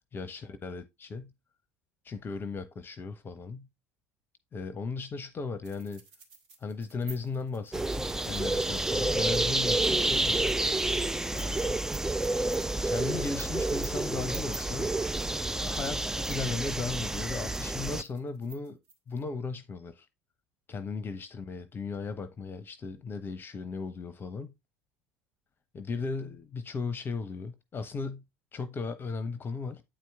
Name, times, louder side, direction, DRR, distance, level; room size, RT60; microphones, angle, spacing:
voice 1, 0.1-1.3 2.0-3.7 4.5-6.0 6.6-10.6 11.3-11.8 12.9-15.0 15.6-18.8 19.1-20.1 20.7-24.5 25.7-28.2 28.5-29.8, left 4 dB, 30° left, 0.8 m, -36 dB
sound 1, 5.6-19.2, right 4 dB, 65° right, 2.0 m, -51 dB
sound 2, 7.7-18.0, right 2 dB, 5° right, 0.4 m, -29 dB
8.7 x 4.6 x 3.4 m
figure-of-eight pair, 65°, 7 cm